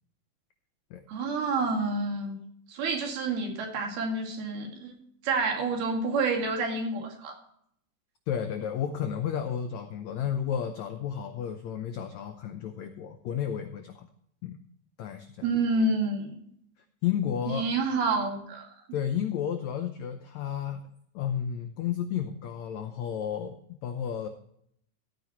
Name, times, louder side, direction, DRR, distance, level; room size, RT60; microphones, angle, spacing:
voice 1, 1.1-2.4 2.7-5.0 5.2-7.4 15.4-16.3 17.5-18.7, right 3 dB, 90° right, 2 dB, 4.1 m, -28 dB
voice 2, 8.3-14.1 14.4-14.6 15.0-15.3 17.0-17.7 18.9-20.9 21.1-24.3, left 9 dB, 85° left, 7 dB, 1.6 m, -32 dB
14.5 x 9.4 x 3.0 m, 0.68 s
omnidirectional pair, 4.3 m